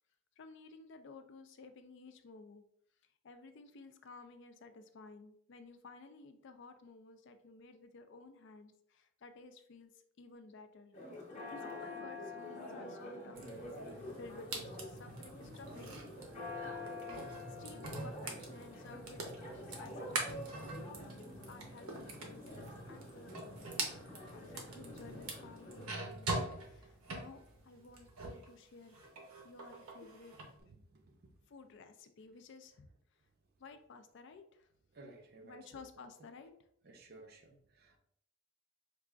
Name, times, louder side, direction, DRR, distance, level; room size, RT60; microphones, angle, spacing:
voice 1, 0.4-2.6 3.2-10.9 11.5-16.0 17.0-19.2 19.6-23.7 24.3-29.0 29.4-30.4 31.5-32.9 33.6-34.7 35.4-36.5, left 3 dB, 55° left, 9 dB, 0.4 m, -55 dB
Church bell, 10.9-25.9, left 2 dB, 30° left, 0.9 m, -48 dB
sound 1, 13.3-28.5 28.8-30.5, right 2 dB, 90° right, 0.8 m, -44 dB
voice 2, 30.6-31.3 34.9-35.6 36.8-38.0, right 2 dB, 45° right, 4 dB, 0.5 m, -57 dB
4.7 x 2.4 x 2.3 m, 0.68 s
head